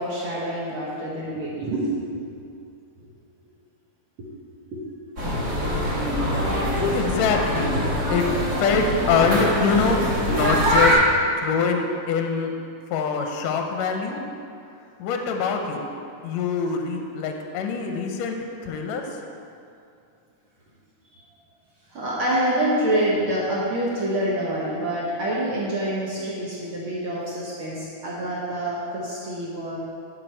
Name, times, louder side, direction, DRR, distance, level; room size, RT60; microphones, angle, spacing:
voice 1, 0.0-2.4 4.2-4.3 4.7-4.8 21.9-29.8, right 1 dB, 60° right, -7 dB, 1.5 m, -26 dB
sound 1, 5.2-10.9, equal, 35° right, 1.2 m, -23 dB
voice 2, 6.9-7.7 8.1-10.0 10.3-11.0 11.4-12.5 12.9-14.2 15.0-15.8 16.2-18.4 18.6-19.1, left 5 dB, 75° left, 3 dB, 1.7 m, -24 dB
10.5 x 4.7 x 4.5 m, 2.5 s
omnidirectional pair, 3.5 m